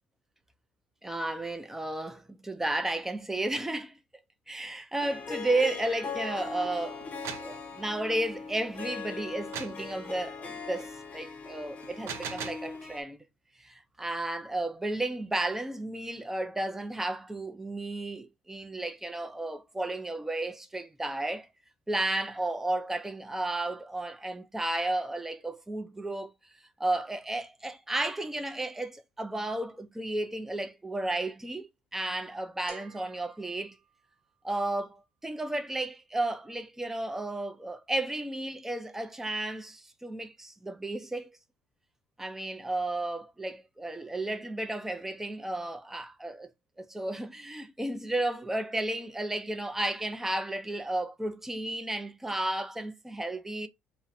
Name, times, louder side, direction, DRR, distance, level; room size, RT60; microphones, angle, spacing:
voice 1, 1.0-4.0 4.5-7.0 7.4-13.2 13.6-21.5 21.9-26.3 26.8-33.8 34.4-41.3 42.2-46.5 46.8-53.7, right 2 dB, 10° right, 0.4 m, -33 dB
Harp, 5.0-13.0, left 5 dB, 30° left, 0.6 m, -40 dB
sound 1, 7.0-7.6 9.5-9.8 11.8-12.7, right 7 dB, 65° right, 0.5 m, -38 dB
sound 2, 32.7-34.6, right 2 dB, 50° right, 0.8 m, -53 dB
2.5 x 2.1 x 2.5 m
supercardioid pair, 100°, 5 cm